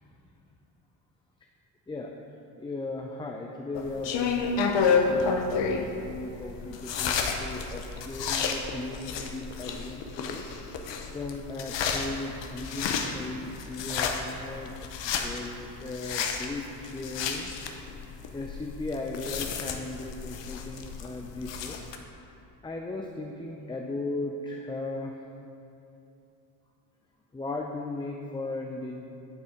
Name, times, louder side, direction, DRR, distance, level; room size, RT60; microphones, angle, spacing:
voice 1, 2.6-10.5 11.1-14.8 15.0-17.5 18.3-21.9 22.6-25.1 27.3-29.0, left 2 dB, 10° left, 1 dB, 0.5 m, -37 dB
sound 1, 3.7-22.0, left 5 dB, 60° left, 0.9 m, -31 dB
9.4 x 4.1 x 5.0 m, 2.7 s
supercardioid pair, 60°, 49 cm